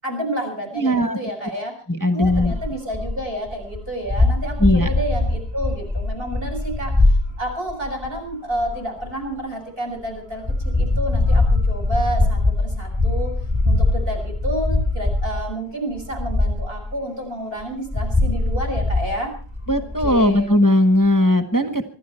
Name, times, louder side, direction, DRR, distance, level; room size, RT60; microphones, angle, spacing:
voice 1, 0.0-1.7 2.1-13.3 13.6-19.3 20.0-20.5, right 1 dB, 35° right, 4 dB, 6.2 m, -30 dB
voice 2, 0.7-1.2 1.9-2.5 4.6-4.9 19.7-21.8, left 1 dB, 15° left, 7 dB, 1.1 m, -18 dB
sound 1, 2.2-9.4 10.0-15.5 15.9-16.9 17.6-20.5, left 2 dB, 15° right, 5.5 m, -22 dB
25.0 x 12.5 x 4.4 m, 0.40 s
omnidirectional pair, 1.7 m